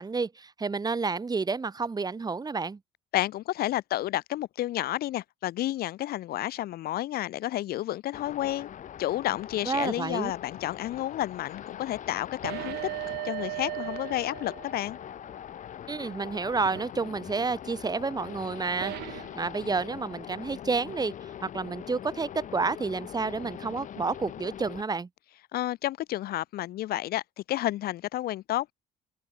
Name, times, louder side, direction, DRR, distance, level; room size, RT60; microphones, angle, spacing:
voice 1, 0.0-2.8 9.7-10.3 15.9-25.1, right 4 dB, 25° right, 2.5 m, -30 dB
voice 2, 3.1-8.7 9.0-12.8 13.2-15.0 25.5-27.2 27.5-28.7, left 14 dB, 65° left, 0.8 m, -31 dB
sound 1, 8.1-24.8, left 9 dB, 50° left, 1.3 m, -42 dB
sound 2, 12.4-15.0 16.6-16.9 18.8-19.4, right 19 dB, 80° right, 0.6 m, -37 dB
open air
cardioid pair, 110°, 17 cm